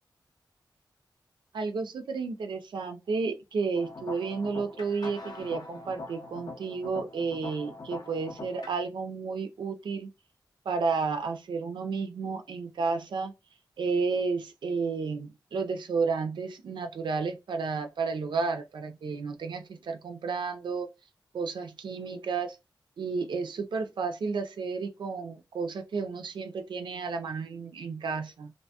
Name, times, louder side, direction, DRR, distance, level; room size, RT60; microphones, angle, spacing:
voice 1, 1.5-10.1 10.7-13.3 13.8-20.9 21.3-22.6 23.0-28.5, right 4 dB, 80° right, 0.4 m, -32 dB
sound 1, 3.7-8.8, left 2 dB, 60° left, 0.6 m, -43 dB
2.6 x 2.2 x 2.7 m
cardioid pair, 45°, 8 cm